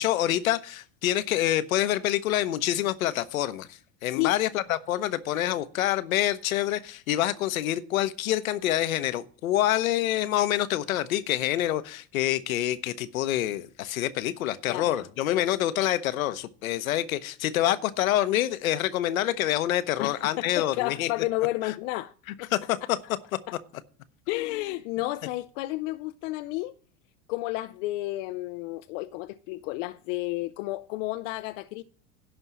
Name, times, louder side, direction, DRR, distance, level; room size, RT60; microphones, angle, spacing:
voice 1, 0.0-3.7 4.0-21.1 22.5-22.8, left 13 dB, 85° left, 0.9 m, -26 dB
voice 2, 20.0-22.1 22.4-22.5 24.3-26.7 27.3-31.8, left 19 dB, 65° left, 0.6 m, -31 dB
11.0 x 4.5 x 8.1 m
hypercardioid pair, 90°, 40 cm